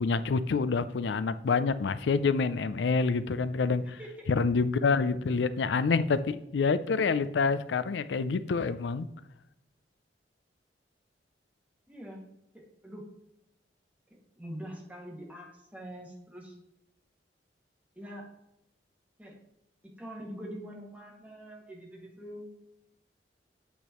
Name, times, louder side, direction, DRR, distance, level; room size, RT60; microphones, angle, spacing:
voice 1, 0.0-4.0 4.3-9.1, left 4 dB, 85° left, 14 dB, 0.4 m, -27 dB
voice 2, 3.8-4.3 11.9-12.3 12.5-13.1 14.4-16.5 18.0-18.3 19.2-19.4 19.8-22.5, equal, 10° right, -2 dB, 2.0 m, -44 dB
9.2 x 8.2 x 3.0 m, 0.84 s
head